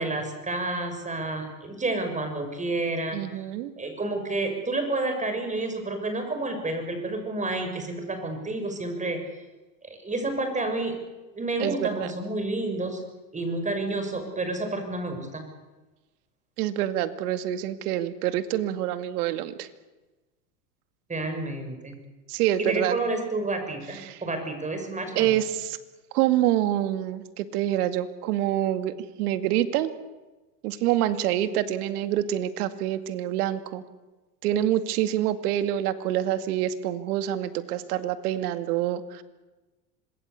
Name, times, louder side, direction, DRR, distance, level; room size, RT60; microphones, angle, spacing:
voice 1, 0.0-3.4 3.8-9.2 9.8-11.0 11.3-13.0 13.3-15.5 21.1-21.9 22.6-25.3, right 2 dB, 15° right, 6 dB, 6.7 m, -30 dB
voice 2, 3.1-3.7 11.6-12.1 16.6-19.7 22.3-23.0 24.0-24.2 25.2-25.8 26.1-29.9 30.6-33.8 34.4-39.2, right 12 dB, 65° right, 10 dB, 2.3 m, -26 dB
26.5 x 20.5 x 8.5 m, 1.1 s
hypercardioid pair, 110°, 48 cm